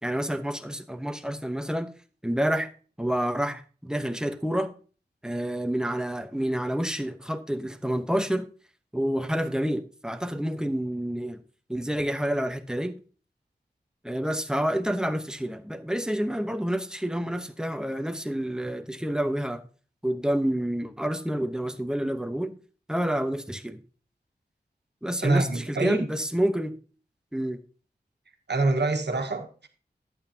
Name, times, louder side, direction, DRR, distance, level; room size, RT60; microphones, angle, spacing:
voice 1, 0.0-1.9 2.2-2.7 3.0-4.7 5.2-8.5 8.9-11.4 11.7-13.0 14.0-19.6 20.0-22.6 22.9-23.8 25.0-26.8 27.3-27.6, equal, 5° right, 1.0 m, -28 dB
voice 2, 25.2-26.1 28.5-29.7, right 2 dB, 85° right, 1.4 m, -25 dB
11.5 x 9.0 x 2.8 m
wide cardioid pair, 70°, 17 cm